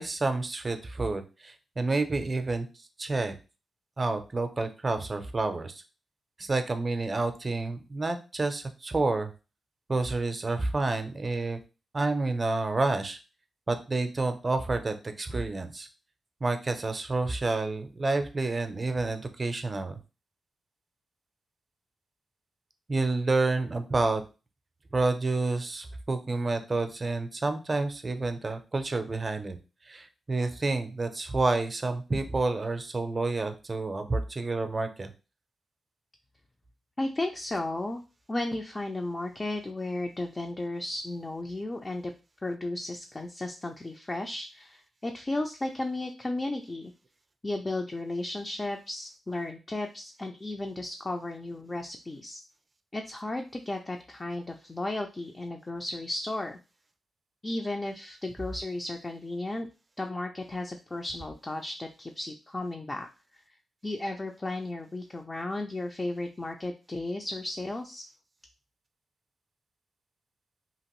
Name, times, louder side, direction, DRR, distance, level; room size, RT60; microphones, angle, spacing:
voice 1, 0.0-3.4 4.0-5.8 6.4-9.3 9.9-11.6 11.9-13.2 13.7-15.9 16.4-20.0 22.9-24.2 24.9-29.6 29.8-35.1, right 3 dB, 30° right, 8 dB, 0.5 m, -29 dB
voice 2, 37.0-38.0 38.3-42.1 42.4-46.9 47.4-52.4 52.9-56.6 57.4-59.7 60.0-63.1 63.8-68.0, left 2 dB, 25° left, 3 dB, 0.3 m, -34 dB
2.8 x 2.5 x 3.0 m, 0.31 s
cardioid pair, 90°, 0 cm